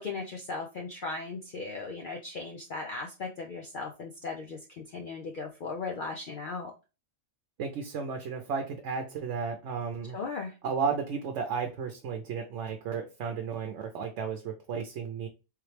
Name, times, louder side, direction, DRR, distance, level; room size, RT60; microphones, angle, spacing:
voice 1, 0.0-6.7 10.1-10.5, left 4 dB, 55° left, 1 dB, 0.6 m, -37 dB
voice 2, 7.6-10.2 10.6-15.3, right 6 dB, 75° right, 4 dB, 0.9 m, -33 dB
3.7 x 3.0 x 3.1 m, 0.30 s
omnidirectional pair, 1.2 m